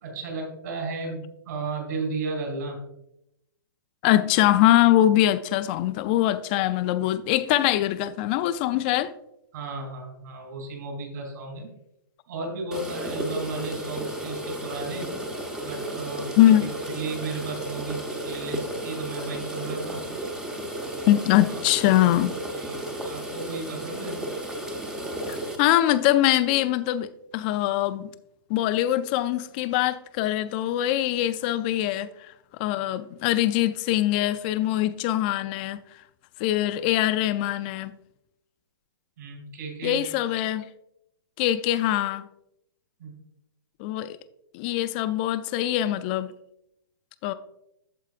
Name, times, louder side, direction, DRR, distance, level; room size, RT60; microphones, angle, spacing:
voice 1, 0.0-2.8 9.5-11.7 12.3-15.2 15.6-20.1 21.5-21.6 22.5-24.5 39.2-40.0 43.0-43.1, right 3 dB, 55° right, 3.0 m, -34 dB
voice 2, 4.0-9.1 16.4-16.6 21.1-22.3 25.3-28.1 28.5-32.1 32.6-35.8 36.4-37.9 39.8-40.7 41.4-42.2 43.8-44.2 44.5-46.3 47.2-47.3, left 13 dB, 25° left, 0.3 m, -23 dB
sound 1, 12.7-25.6, right 1 dB, 5° right, 0.7 m, -33 dB
13.5 x 4.6 x 2.5 m
hypercardioid pair, 160°, 12 cm